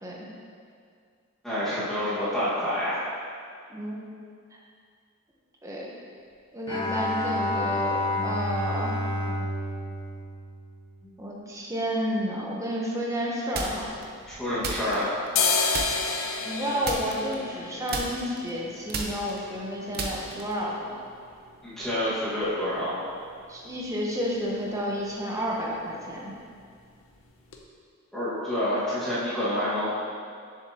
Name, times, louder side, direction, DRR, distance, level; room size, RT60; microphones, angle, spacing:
voice 1, 1.4-3.0 14.4-15.1 21.6-23.0 28.1-29.8, left 1 dB, 5° left, -13 dB, 1.8 m, -28 dB
voice 2, 6.5-9.0 11.2-13.9 16.2-21.0 23.5-26.3, equal, 15° right, -4 dB, 1.0 m, -31 dB
Bowed string instrument, 6.7-11.1, left 1 dB, 25° left, 0.7 m, -30 dB
sound 1, 13.5-14.0 14.6-15.4 15.7-16.2 16.8-17.6 17.9-20.7, right 3 dB, 50° right, 0.7 m, -33 dB
sound 2, 13.8-14.8 15.2-22.9 23.2-23.3 23.6-24.1 24.4-24.6 24.9-25.2 25.4-26.1 26.5-26.6 27.1-27.2 27.5-27.6, left 5 dB, 70° left, 0.7 m, -32 dB
7.2 x 6.7 x 2.9 m, 2.2 s
head